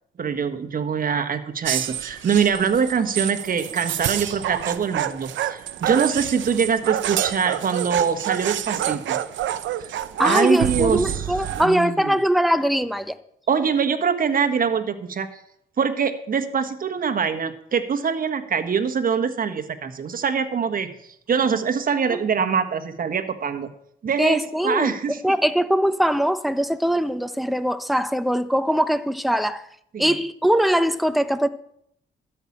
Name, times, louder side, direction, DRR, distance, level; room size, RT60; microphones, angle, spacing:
voice 1, 0.2-9.2 9.8-9.9 10.2-11.2 11.5-12.2 13.5-15.3 15.8-20.9 21.3-23.7 24.0-25.2 29.9-30.1, right 6 dB, 45° right, 1.4 m, -23 dB
sound 1, 1.6-11.7, right 11 dB, 70° right, 0.8 m, -28 dB
voice 2, 10.2-13.2 22.1-22.2 24.2-24.9 25.2-29.7 30.0-31.5, equal, ahead, 0.8 m, -21 dB
12.5 x 5.9 x 8.6 m
cardioid pair, 90°, 20 cm